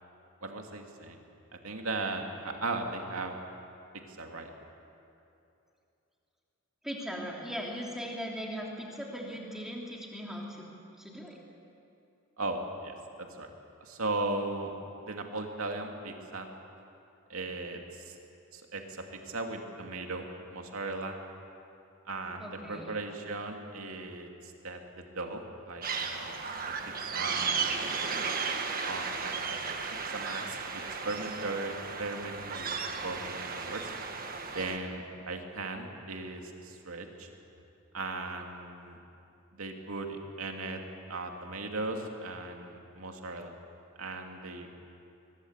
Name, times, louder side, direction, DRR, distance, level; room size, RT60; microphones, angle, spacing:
voice 1, 0.4-1.2 1.6-3.4 4.2-4.5 12.4-13.5 13.8-14.7 15.0-16.5 17.3-18.2 18.5-21.2 22.1-24.3 24.6-25.9 26.1-26.5 27.1-27.7 28.8-29.6 30.1-33.9 34.5-37.3 37.9-39.0 39.5-40.1 40.4-40.8 41.1-43.5 44.0-44.7, right 2 dB, 70° right, 3 dB, 2.6 m, -37 dB
voice 2, 6.8-10.7 11.0-11.4 22.4-22.9, equal, ahead, -2 dB, 2.9 m, -39 dB
sound 1, 25.8-34.8, right 5 dB, 40° right, 1.6 m, -35 dB
22.5 x 21.5 x 8.2 m, 2.7 s
head